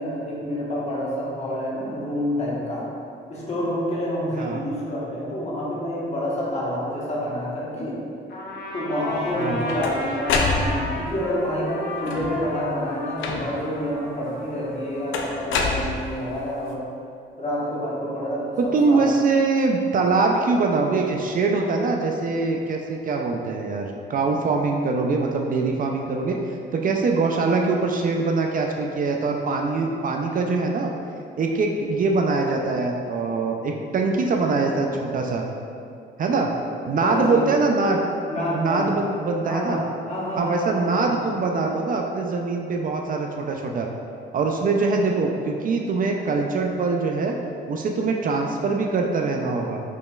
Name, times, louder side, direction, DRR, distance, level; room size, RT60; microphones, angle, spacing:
voice 1, 0.0-2.8 3.3-8.0 8.7-16.8 17.4-18.6 18.9-19.0 37.0-37.5 38.3-38.9 39.4-39.8 40.1-41.2, equal, 35° left, -6 dB, 1.1 m, -28 dB
Trumpet, 8.3-15.4, left 2 dB, 50° left, 0.8 m, -35 dB
sound 1, 9.3-11.1 12.0-12.5 13.2-13.8 15.1-16.4, left 3 dB, 75° left, 0.5 m, -26 dB
voice 2, 18.6-26.4 26.7-30.9 31.4-35.4 36.2-36.5 36.9-38.0 38.5-39.8 40.4-43.9 44.3-47.4 47.7-49.8, right 3 dB, 45° right, 1 dB, 0.4 m, -23 dB
5.1 x 3.1 x 2.2 m, 2.4 s
cardioid pair, 90°, 20 cm